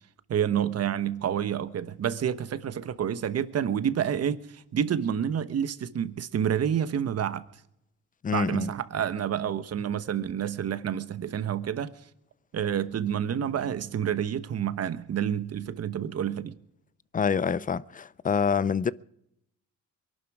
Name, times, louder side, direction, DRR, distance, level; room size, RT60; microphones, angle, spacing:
voice 1, 0.3-7.4 8.3-11.9 12.5-16.5, right 9 dB, 55° right, 1.2 m, -29 dB
voice 2, 8.2-8.7 17.1-18.9, left 6 dB, 25° left, 0.5 m, -26 dB
23.0 x 12.0 x 4.8 m
cardioid pair, 90°, 30 cm